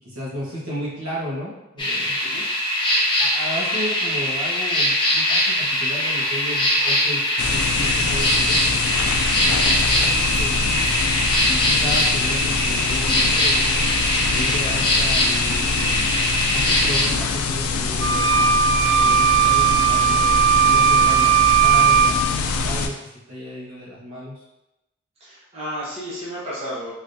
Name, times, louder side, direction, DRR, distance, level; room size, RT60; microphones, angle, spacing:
voice 1, 0.0-2.2 2.9-10.7 11.5-13.8 14.3-15.8 16.5-18.3 18.8-24.4, equal, 80° right, -7 dB, 1.3 m, -34 dB
sound 1, 1.8-17.0, left 1 dB, 20° left, 0.7 m, -21 dB
sound 2, 7.4-22.9, left 4 dB, 85° left, 0.4 m, -24 dB
sound 3, 18.0-22.2, right 8 dB, 65° right, 0.4 m, -17 dB
voice 2, 25.2-26.9, equal, 30° right, -9 dB, 0.9 m, -32 dB
3.4 x 3.0 x 2.6 m, 0.95 s
head